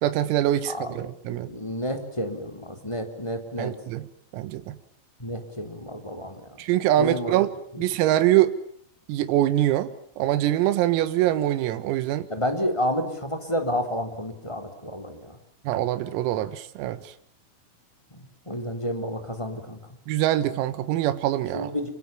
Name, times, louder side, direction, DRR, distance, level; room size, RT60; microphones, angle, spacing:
voice 1, 0.0-1.5 3.6-4.1 4.3-4.8 6.6-7.5 7.8-8.6 9.1-12.3 15.7-17.1 20.1-21.7, right 13 dB, 85° right, 12 dB, 4.1 m, -24 dB
voice 2, 0.7-1.0 1.3-3.7 5.2-6.6 7.0-7.3 12.3-15.4 18.1-19.8 21.5-21.9, equal, 5° left, 6 dB, 2.9 m, -30 dB
28.0 x 25.5 x 7.2 m, 0.65 s
omnidirectional pair, 6.0 m